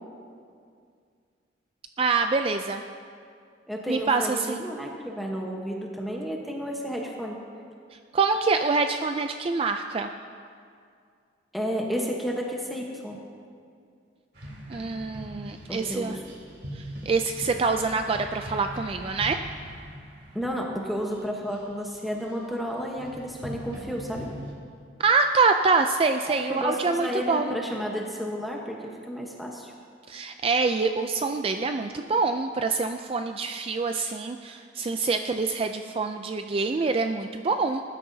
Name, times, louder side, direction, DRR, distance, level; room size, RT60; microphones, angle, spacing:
voice 1, 2.0-2.8 3.9-4.6 8.1-10.1 14.7-16.2 16.7-19.4 25.0-27.5 30.1-37.8, right 4 dB, 30° right, 6 dB, 0.4 m, -25 dB
voice 2, 3.7-7.4 11.5-13.2 15.7-16.2 20.3-24.3 26.3-29.7, equal, ahead, -1 dB, 1.1 m, -32 dB
sound 1, 14.3-22.3 23.0-24.5, equal, 65° right, 2.8 m, -41 dB
20.0 x 12.5 x 2.8 m, 2.2 s
head